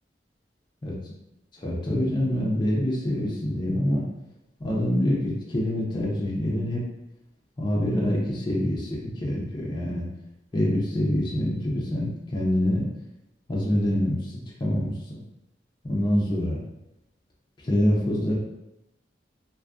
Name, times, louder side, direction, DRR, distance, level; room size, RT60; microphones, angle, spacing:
voice 1, 1.6-4.0 4.6-6.8 7.6-10.1 10.5-12.9 13.5-15.2 15.8-16.6 17.6-18.4, left 1 dB, 25° left, -5 dB, 0.4 m, -25 dB
2.5 x 2.3 x 2.4 m, 0.86 s
head